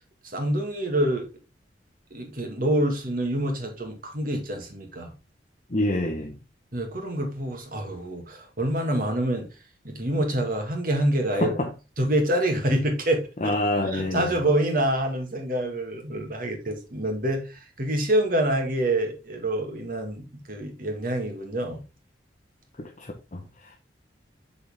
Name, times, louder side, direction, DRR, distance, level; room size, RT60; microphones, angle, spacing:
voice 1, 0.3-1.2 2.1-5.1 6.7-9.5 9.8-11.6 12.0-13.5 13.8-21.8, right 1 dB, 50° right, 1.9 m, -26 dB
voice 2, 5.7-6.4 11.4-11.7 13.4-14.3 22.8-23.8, left 1 dB, 40° left, 1.0 m, -27 dB
8.4 x 4.3 x 3.6 m
head